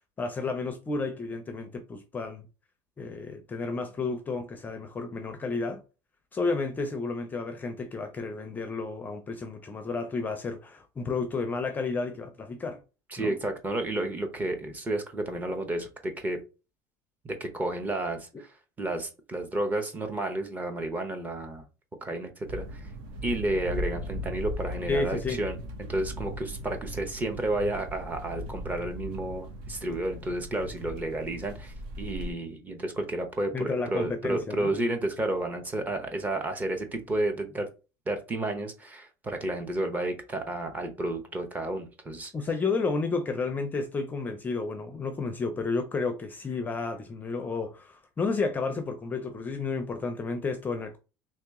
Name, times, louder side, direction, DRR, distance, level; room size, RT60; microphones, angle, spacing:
voice 1, 0.2-2.5 3.0-5.8 6.3-12.8 13.2-13.4 24.9-25.4 33.5-34.7 42.3-51.0, left 4 dB, 20° left, 0.5 m, -31 dB
voice 2, 13.1-16.4 17.2-18.5 18.8-21.6 22.0-22.8 23.2-37.7 38.1-42.3, right 1 dB, 20° right, 0.7 m, -31 dB
sound 1, 22.5-32.3, equal, 65° right, 0.8 m, -38 dB
3.1 x 2.9 x 3.6 m
cardioid pair, 145°, 9 cm